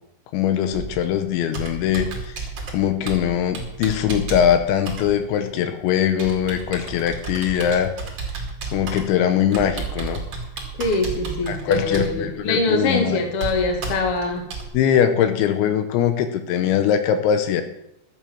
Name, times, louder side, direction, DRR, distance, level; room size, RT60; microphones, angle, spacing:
voice 1, 0.3-2.4 2.7-7.9 8.7-10.2 11.5-13.2 14.7-17.6, left 9 dB, 85° left, 9 dB, 3.1 m, -21 dB
Computer keyboard, 0.7-14.7, right 4 dB, 40° right, 2.6 m, -33 dB
voice 2, 10.8-14.5, left 2 dB, 45° left, 3 dB, 2.0 m, -23 dB
12.0 x 8.1 x 7.2 m, 0.83 s
omnidirectional pair, 5.4 m